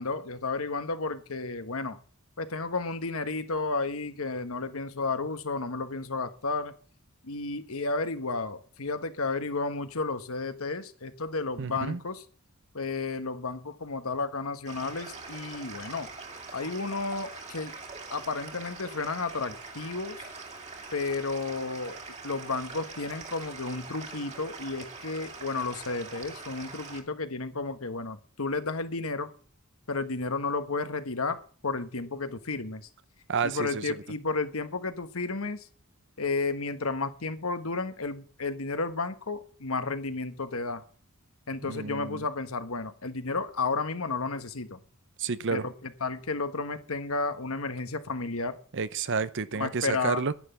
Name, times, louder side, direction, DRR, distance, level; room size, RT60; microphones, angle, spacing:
voice 1, 0.0-2.0 2.4-6.7 7.2-12.2 12.7-16.1 16.5-17.7 18.1-20.2 20.9-22.0 22.2-29.3 29.9-32.8 33.4-35.7 36.2-40.8 41.5-44.8 45.5-48.6 49.5-50.2, left 3 dB, 70° left, 1.4 m, -32 dB
voice 2, 11.6-12.0 33.3-34.0 41.6-42.2 45.2-45.6 48.7-50.3, right 5 dB, 55° right, 0.8 m, -30 dB
sound 1, 14.6-27.0, right 4 dB, 30° right, 2.4 m, -43 dB
11.0 x 10.0 x 6.9 m
head